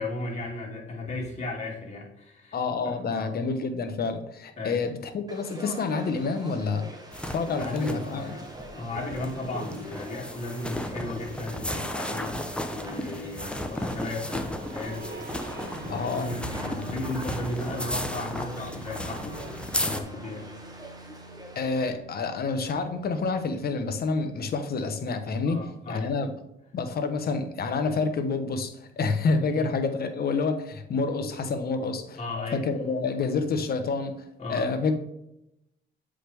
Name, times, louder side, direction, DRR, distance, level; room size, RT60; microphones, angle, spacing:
voice 1, 0.0-2.6 2.8-3.4 4.6-4.8 7.2-8.4 8.7-15.6 15.8-19.4 19.8-20.5 25.4-26.2 29.5-29.7 32.2-32.6 32.9-33.3 34.4-35.0, left 2 dB, 35° left, -2 dB, 2.6 m, -36 dB
voice 2, 2.5-6.9 7.3-8.4 15.9-16.3 21.5-26.3 26.7-32.2 32.5-34.2 34.5-35.0, left 4 dB, 50° left, 7 dB, 1.1 m, -28 dB
Conversation / Crowd, 5.3-21.9, right 1 dB, 20° right, 1.7 m, -44 dB
sound 1, 7.1-20.0, left 1 dB, 5° left, 0.8 m, -35 dB
sound 2, 13.7-24.3, right 3 dB, 50° right, 1.9 m, -45 dB
7.7 x 5.1 x 3.4 m, 0.83 s
cardioid pair, 90°, 20 cm